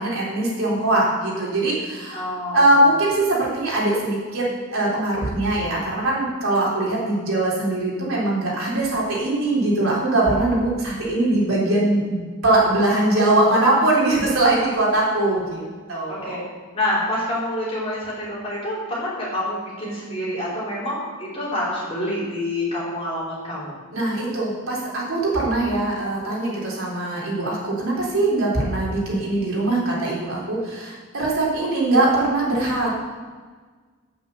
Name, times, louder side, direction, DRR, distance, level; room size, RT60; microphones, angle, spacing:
voice 1, 0.0-2.3 2.5-4.5 4.7-15.6 15.9-16.4 23.9-32.9, right 2 dB, 70° right, -5 dB, 3.7 m, -21 dB
voice 2, 2.1-2.8 16.0-16.4 16.7-23.8, left 1 dB, 25° left, -7 dB, 4.1 m, -27 dB
9.2 x 8.9 x 6.8 m, 1.5 s
head